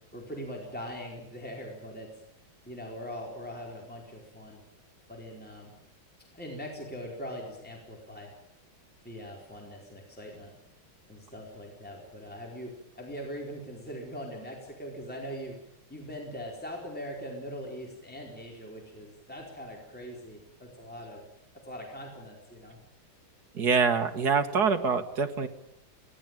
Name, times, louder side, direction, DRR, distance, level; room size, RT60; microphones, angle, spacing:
voice 1, 0.1-2.1 2.6-4.6 5.1-5.7 6.3-8.3 9.0-10.5 11.1-15.6 15.9-21.2 21.6-22.8, equal, 5° left, -1 dB, 4.5 m, -41 dB
voice 2, 23.5-25.5, right 5 dB, 50° right, 7 dB, 2.0 m, -25 dB
23.5 x 18.0 x 9.1 m, 0.78 s
omnidirectional pair, 2.3 m